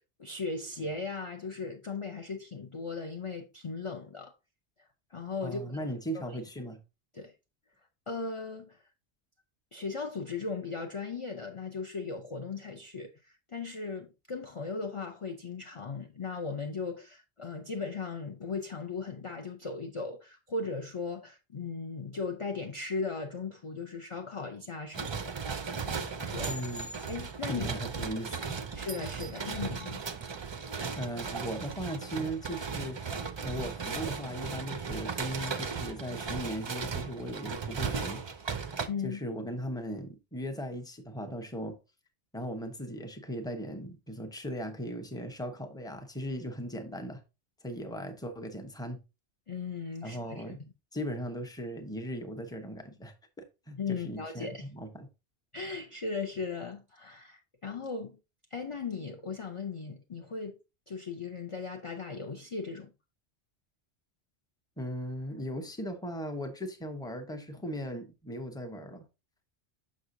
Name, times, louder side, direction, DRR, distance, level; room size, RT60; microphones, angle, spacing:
voice 1, 0.2-4.3 5.1-5.6 6.1-6.4 7.1-7.3 8.1-8.8 9.7-25.3 25.8-26.5 27.1-27.7 28.7-30.0 38.9-39.2 49.5-50.7 53.8-54.7 55.5-58.2 58.5-60.6 60.9-62.9, left 4 dB, 35° left, 0.6 m, -37 dB
voice 2, 5.4-6.8 26.4-26.9 27.5-28.6 31.0-33.0 33.4-38.2 38.5-41.8 42.3-47.2 47.6-49.0 50.0-50.6 50.9-55.1 64.8-69.0, equal, 5° left, 0.8 m, -38 dB
sound 1, 24.9-38.9, right 5 dB, 40° right, 0.4 m, -36 dB
6.4 x 6.3 x 2.6 m
omnidirectional pair, 1.1 m